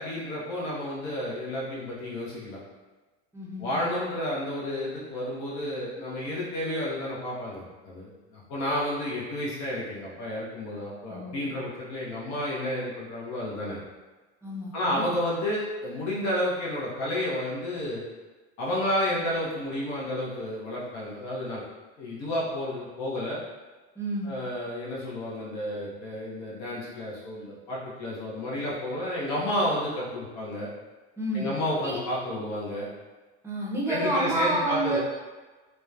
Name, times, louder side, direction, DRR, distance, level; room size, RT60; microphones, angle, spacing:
voice 1, 0.0-2.6 3.6-13.8 14.7-18.1 18.6-21.6 22.0-23.4 24.2-30.7 31.3-32.9 33.9-35.0, left 1 dB, 60° left, -6 dB, 0.8 m, -31 dB
voice 2, 3.3-3.8 11.1-11.5 14.4-15.0 24.0-24.3 31.2-31.5 31.8-32.0 33.4-35.0, right 1 dB, 10° right, -5 dB, 0.6 m, -29 dB
2.9 x 2.1 x 2.4 m, 1.3 s
supercardioid pair, 110°, 31 cm